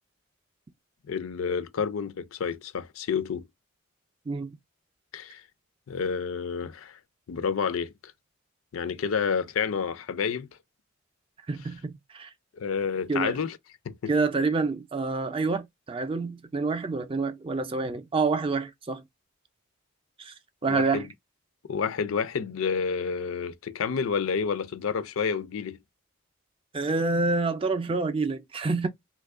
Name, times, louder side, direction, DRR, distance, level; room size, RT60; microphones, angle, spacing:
voice 1, 1.1-3.5 5.1-5.4 5.9-7.0 7.3-7.9 8.7-10.5 12.6-13.6 13.9-14.1 20.7-21.1 21.7-25.8, left 6 dB, 80° left, 0.4 m, -29 dB
voice 2, 11.5-12.3 13.1-13.4 14.1-19.0 20.2-20.3 20.6-21.1 26.7-28.9, right 3 dB, 25° right, 0.3 m, -27 dB
3.0 x 2.3 x 3.5 m
head